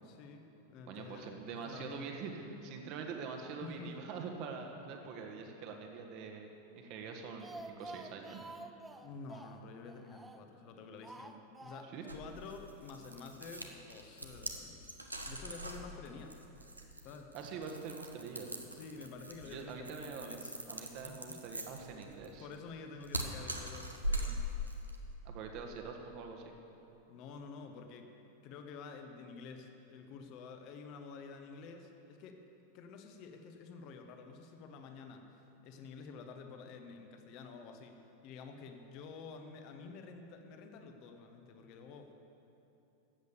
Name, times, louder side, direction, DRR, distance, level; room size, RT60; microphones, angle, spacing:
voice 1, 0.0-2.0 3.6-3.9 9.0-14.8 15.3-16.6 17.0-17.3 18.7-21.2 22.4-24.5 27.1-28.1 28.4-32.4 32.7-35.3 35.6-42.1, left 4 dB, 40° left, 5 dB, 1.1 m, -50 dB
voice 2, 0.9-6.5 6.7-8.4 11.9-12.1 17.3-18.5 19.4-20.4 20.7-22.5 25.2-26.6, right 5 dB, 40° right, 3 dB, 1.5 m, -44 dB
Speech, 7.1-10.6 11.0-12.2 12.4-12.5 12.8-12.9, right 2 dB, 10° right, 0.5 m, -50 dB
sound 1, 12.1-25.0, equal, 85° right, 1.0 m, -41 dB
13.5 x 8.2 x 6.9 m, 3.0 s
figure-of-eight pair, 90°, 0 cm